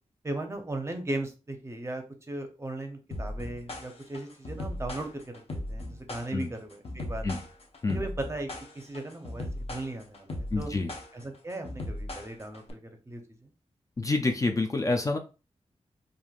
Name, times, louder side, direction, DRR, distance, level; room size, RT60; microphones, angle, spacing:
voice 1, 0.2-7.3 7.9-8.5 8.7-10.7 11.1-13.5, right 2 dB, 25° right, 5 dB, 0.6 m, -37 dB
sound 1, 3.1-12.7, left 1 dB, 55° left, 0.8 m, -37 dB
voice 2, 10.5-10.9 14.0-15.2, left 3 dB, 30° left, 5 dB, 0.4 m, -27 dB
3.1 x 2.5 x 2.4 m, 0.32 s
wide cardioid pair, 85°, 12 cm